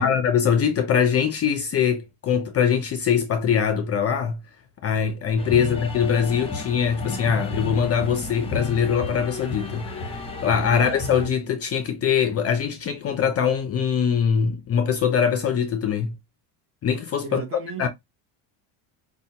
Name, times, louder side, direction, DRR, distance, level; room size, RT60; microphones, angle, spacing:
voice 1, 0.0-4.4 4.8-16.1 16.8-17.4 17.8-17.9, left 7 dB, 35° left, 0.5 m, -22 dB
sound 1, 5.4-11.3, left 4 dB, 10° left, 0.8 m, -32 dB
voice 2, 10.6-11.0 17.2-17.9, right 5 dB, 30° right, 1.0 m, -36 dB
5.3 x 2.2 x 2.8 m
cardioid pair, 135°, 46 cm